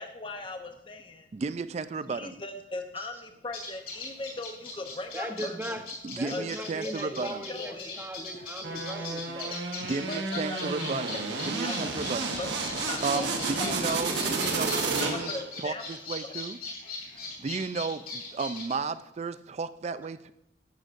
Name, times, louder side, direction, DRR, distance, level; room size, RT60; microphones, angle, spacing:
voice 1, 0.0-1.4 2.0-5.6 6.3-6.4 6.8-8.0 10.1-10.7 11.6-11.8 12.4-13.3 13.6-14.0 14.4-15.8 16.2-16.3 17.0-17.4, left 2 dB, 30° left, 5 dB, 0.8 m, -39 dB
voice 2, 1.3-2.4 6.0-7.5 9.4-12.3 13.0-15.3 15.6-16.6 17.4-20.3, right 4 dB, 35° right, 13 dB, 0.3 m, -34 dB
sound 1, 3.5-18.7, left 3 dB, 50° left, 2.6 m, -40 dB
voice 3, 5.1-9.6 17.2-17.4, right 1 dB, 10° right, 4 dB, 0.8 m, -39 dB
sound 2, 8.6-15.5, right 3 dB, 75° right, 1.2 m, -31 dB
11.5 x 7.9 x 2.5 m, 0.81 s
head